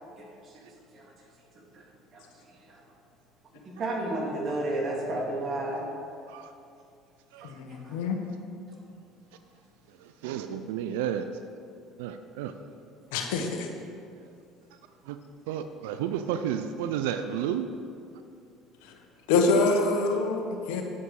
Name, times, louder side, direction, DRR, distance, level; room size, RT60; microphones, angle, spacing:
voice 1, 0.2-0.5 0.9-1.1 1.7-1.8 2.1-2.2 2.7-2.8 3.6-5.9 7.7-7.9, right 1 dB, 45° right, -1 dB, 2.4 m, -32 dB
voice 2, 7.4-8.2 13.1-13.7 19.3-20.8, left 3 dB, 80° left, 4 dB, 1.2 m, -25 dB
voice 3, 9.9-11.3 12.0-12.6 15.0-15.2 15.5-17.7, right 9 dB, 80° right, 9 dB, 0.4 m, -32 dB
9.6 x 8.2 x 4.8 m, 2.5 s
hypercardioid pair, 75°, 0 cm